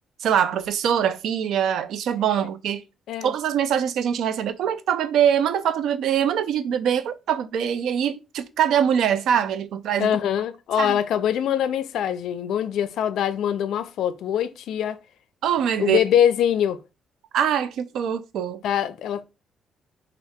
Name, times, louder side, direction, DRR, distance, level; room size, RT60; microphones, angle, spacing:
voice 1, 0.2-2.8 3.2-10.1 10.8-10.9 15.4-16.0 17.3-18.6, right 9 dB, 75° right, 0.3 m, -23 dB
voice 2, 10.0-15.0 15.8-16.8 18.6-19.2, left 9 dB, 75° left, 0.3 m, -23 dB
2.7 x 2.3 x 3.4 m
cardioid pair, 90°, 0 cm